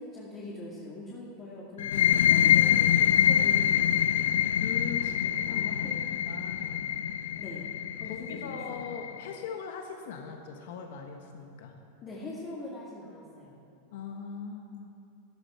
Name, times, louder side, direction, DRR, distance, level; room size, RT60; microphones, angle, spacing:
voice 1, 0.0-4.1 5.0-6.1 7.4-7.7 8.0-8.9 12.0-13.6, left 2 dB, 30° left, -6 dB, 2.4 m, -43 dB
sound 1, 1.8-9.2, left 10 dB, 90° left, 0.4 m, -25 dB
voice 2, 4.6-5.2 5.5-7.0 8.0-11.7 13.9-15.0, left 6 dB, 70° left, 3 dB, 1.3 m, -40 dB
14.5 x 13.0 x 4.4 m, 2.6 s
supercardioid pair, 140°, 0 cm